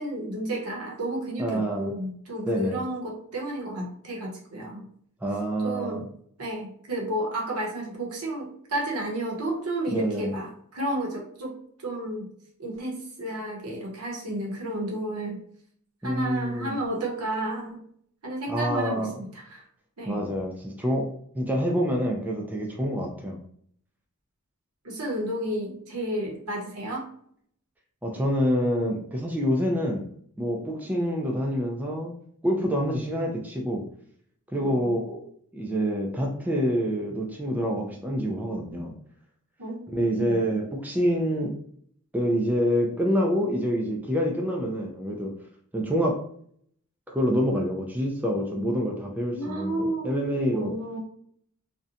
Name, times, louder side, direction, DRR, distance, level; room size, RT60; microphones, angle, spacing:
voice 1, 0.0-4.9 5.6-6.0 6.4-12.3 12.6-15.4 16.0-17.8 18.2-19.6 20.0-20.2 24.8-27.1 34.6-35.0 39.6-39.9 40.2-40.4 49.3-50.2 50.5-51.0, right 1 dB, 80° right, -1 dB, 0.8 m, -32 dB
voice 2, 1.4-1.9 2.5-2.8 5.2-6.0 9.9-10.3 16.0-16.8 18.5-19.1 20.1-21.1 21.4-23.4 28.0-30.0 30.4-32.1 32.4-33.8 34.5-35.2 35.5-38.9 39.9-41.5 42.1-45.3 45.7-46.2 47.1-50.7, equal, 10° right, 0 dB, 0.3 m, -26 dB
2.7 x 2.1 x 2.5 m, 0.63 s
head